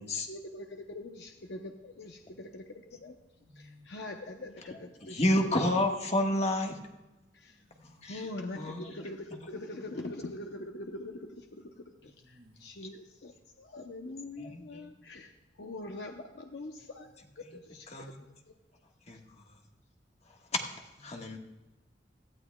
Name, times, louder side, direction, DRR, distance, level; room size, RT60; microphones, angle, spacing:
voice 1, 0.3-2.6 3.0-3.2 3.5-5.3 5.7-5.8 7.3-7.6 8.1-15.3 15.6-17.1 17.4-18.1, left 2 dB, 70° left, 3 dB, 0.8 m, -43 dB
voice 2, 2.9-3.9 7.5-8.3 12.0-12.6 21.1-21.4, left 1 dB, 65° right, -1 dB, 2.1 m, -59 dB
voice 3, 5.0-6.8 8.0-8.3 8.5-9.1 14.4-14.8 17.9-18.2 19.1-19.2 20.6-20.7 21.0-21.4, left 1 dB, 40° left, 2 dB, 1.4 m, -30 dB
18.0 x 13.0 x 2.3 m, 1.1 s
head